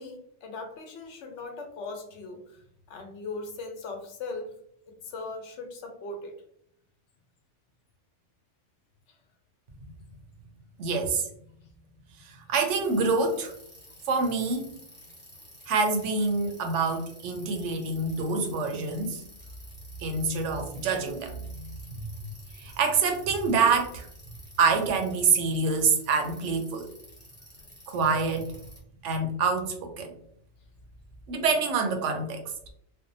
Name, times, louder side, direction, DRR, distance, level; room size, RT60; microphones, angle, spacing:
voice 1, 0.0-4.5 4.9-6.3 9.1-9.2 22.9-23.0 28.9-29.0, left 3 dB, 75° left, 3 dB, 0.9 m, -39 dB
voice 2, 10.8-11.3 12.2-13.5 14.1-14.7 15.7-19.2 20.0-22.1 22.6-26.9 27.9-28.5 29.0-30.1 31.3-32.4, right 4 dB, 90° right, 5 dB, 0.9 m, -26 dB
Bicycle, 12.5-28.8, equal, 10° left, 0.7 m, -52 dB
2.6 x 2.1 x 2.6 m, 0.68 s
omnidirectional pair, 1.2 m